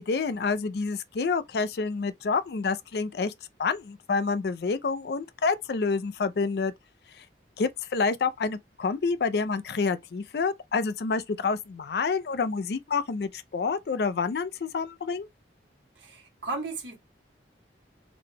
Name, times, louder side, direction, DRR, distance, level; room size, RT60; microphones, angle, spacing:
voice 1, 0.0-3.3 3.6-6.7 7.6-15.3, left 4 dB, 60° left, 0.4 m, -28 dB
voice 2, 16.0-17.0, right 3 dB, 90° right, 1.3 m, -35 dB
4.0 x 2.2 x 3.3 m
head